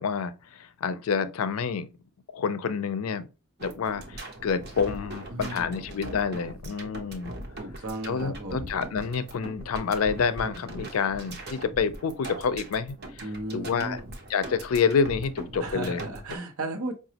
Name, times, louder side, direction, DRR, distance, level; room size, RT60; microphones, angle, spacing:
voice 1, 0.0-1.9 2.3-3.3 3.6-7.4 8.1-14.0 14.3-16.1, left 6 dB, 75° left, 0.4 m, -28 dB
sound 1, 3.6-16.4, right 1 dB, 50° right, 0.8 m, -41 dB
voice 2, 5.3-5.7 7.6-8.7 13.2-14.0 15.6-16.9, right 2 dB, 75° right, 0.9 m, -35 dB
5.0 x 2.3 x 2.8 m
head